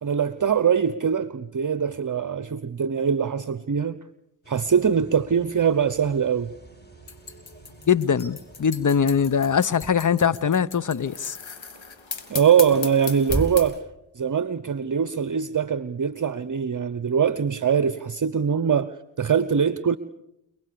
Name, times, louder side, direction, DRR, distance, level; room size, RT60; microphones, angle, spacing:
voice 1, 0.0-4.0 4.5-6.5 12.3-13.8 14.2-20.0, right 7 dB, 40° right, 0.9 m, -22 dB
sound 1, 4.4-9.6, right 1 dB, 20° left, 6.2 m, -49 dB
sound 2, 7.1-13.8, left 5 dB, 70° left, 3.4 m, -36 dB
voice 2, 7.9-11.4, left 7 dB, 40° left, 1.0 m, -22 dB
sound 3, 9.7-17.6, right 2 dB, 10° right, 5.0 m, -38 dB
29.0 x 20.0 x 7.0 m
cardioid pair, 45°, 48 cm